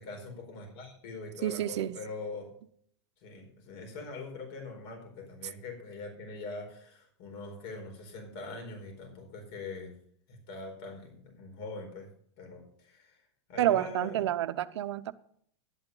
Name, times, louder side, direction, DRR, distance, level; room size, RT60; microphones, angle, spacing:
voice 1, 0.1-2.5 3.2-10.0 10.3-12.1 12.4-13.2 13.5-14.2, left 3 dB, 65° left, 4.5 m, -43 dB
voice 2, 1.4-2.0 13.6-15.1, right 12 dB, 80° right, 0.7 m, -29 dB
11.5 x 8.9 x 5.5 m
hypercardioid pair, 105°, 15 cm